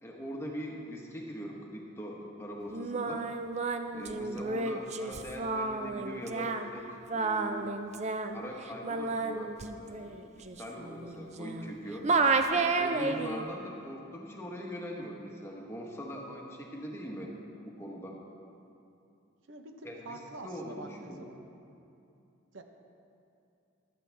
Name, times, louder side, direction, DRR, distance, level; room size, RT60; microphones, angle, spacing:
voice 1, 0.0-3.2 3.9-7.7 8.3-12.1 12.5-17.3 17.6-18.2 19.8-21.3, equal, 10° left, -1 dB, 1.1 m, -42 dB
Singing, 2.7-11.7 12.0-13.4, right 3 dB, 35° right, 0.5 m, -31 dB
voice 2, 19.5-21.4 22.5-22.6, right 2 dB, 70° right, 4 dB, 0.9 m, -46 dB
14.5 x 11.5 x 3.4 m, 2.7 s
head